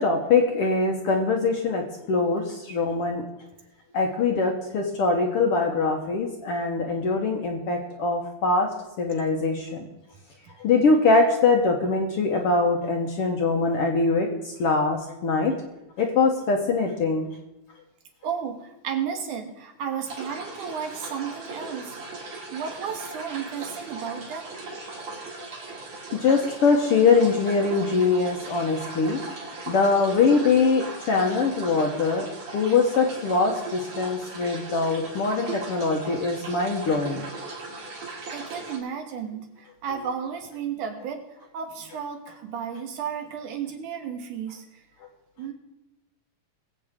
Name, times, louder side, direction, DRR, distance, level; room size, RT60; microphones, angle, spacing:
voice 1, 0.0-3.3 3.9-9.8 10.6-15.5 16.0-17.3 26.2-29.2 29.7-32.3 32.5-37.3, left 4 dB, 60° left, 2 dB, 1.5 m, -23 dB
voice 2, 18.2-22.0 22.5-24.5 38.3-41.2 41.5-44.6 45.4-45.5, right 7 dB, 70° right, 5 dB, 2.8 m, -33 dB
sound 1, 20.1-38.8, right 3 dB, 45° right, 3.2 m, -38 dB
22.0 x 8.1 x 3.7 m, 0.93 s
omnidirectional pair, 3.9 m